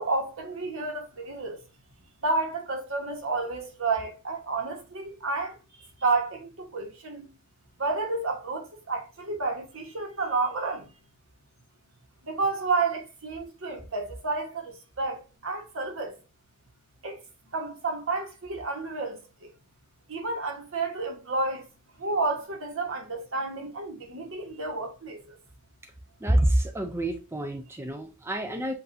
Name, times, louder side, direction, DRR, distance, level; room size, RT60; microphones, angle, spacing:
voice 1, 0.0-1.6 2.2-7.3 7.8-10.9 12.2-16.2 17.0-17.2 17.5-19.5 20.1-21.7 22.0-25.4, right 3 dB, 65° right, 1.3 m, -31 dB
voice 2, 26.2-28.7, right 1 dB, 10° right, 0.4 m, -27 dB
7.7 x 2.6 x 2.6 m
head